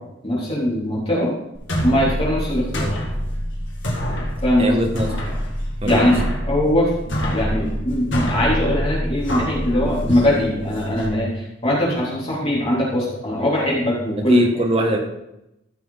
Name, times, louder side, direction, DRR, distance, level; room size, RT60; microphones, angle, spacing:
voice 1, 0.2-1.3 1.8-3.0 4.4-4.9 5.8-6.9 7.3-14.6, left 1 dB, 30° left, -7 dB, 3.5 m, -21 dB
sound 1, 1.6-11.1, equal, 70° left, 2.0 m, -25 dB
voice 2, 4.6-5.1 5.8-6.0 14.3-15.0, right 1 dB, 30° right, 2 dB, 1.7 m, -21 dB
14.5 x 6.1 x 4.0 m, 0.86 s
head